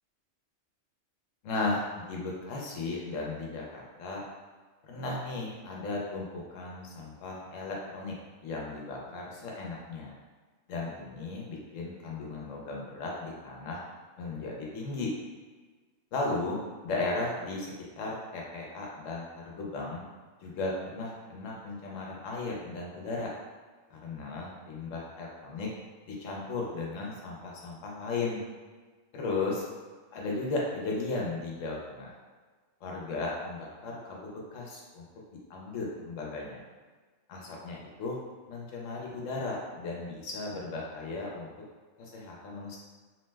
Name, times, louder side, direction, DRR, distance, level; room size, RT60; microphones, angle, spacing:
voice 1, 1.4-4.2 4.8-8.1 8.4-10.1 10.7-13.8 14.2-15.1 16.1-20.0 20.4-23.3 23.9-25.7 26.1-28.4 29.1-29.6 30.1-32.1 32.8-35.1 35.5-36.6 37.3-38.2 38.5-41.5 42.0-42.8, left 3 dB, 80° left, -2 dB, 1.0 m, -35 dB
2.9 x 2.1 x 3.2 m, 1.4 s
omnidirectional pair, 1.3 m